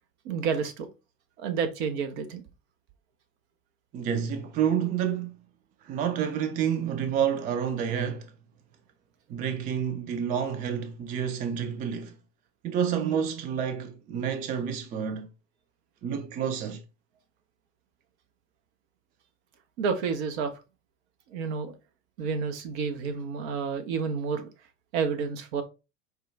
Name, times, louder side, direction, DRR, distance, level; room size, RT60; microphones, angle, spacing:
voice 1, 0.2-0.9 1.4-2.4 19.8-20.5 21.3-21.7 22.2-24.5 24.9-25.6, right 6 dB, 55° right, 0.9 m, -30 dB
voice 2, 3.9-5.3 5.8-8.3 9.3-12.2 12.6-15.3 16.0-16.8, right 8 dB, 20° right, 0.3 m, -29 dB
4.7 x 2.2 x 3.2 m
figure-of-eight pair, 80°, 40 cm